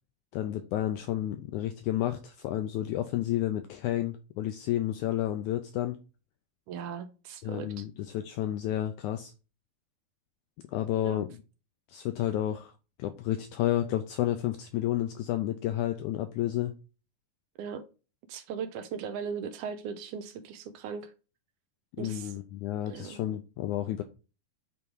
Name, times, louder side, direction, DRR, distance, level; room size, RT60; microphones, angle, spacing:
voice 1, 0.3-6.0 7.4-9.3 10.7-11.4 11.9-12.7 13.0-16.7 22.0-24.0, left 13 dB, 90° left, 1.7 m, -31 dB
voice 2, 6.7-7.9 11.0-11.3 17.6-17.8 18.3-21.1 22.0-22.3 22.9-23.2, right 6 dB, 85° right, 1.8 m, -38 dB
8.5 x 3.6 x 4.6 m
omnidirectional pair, 4.0 m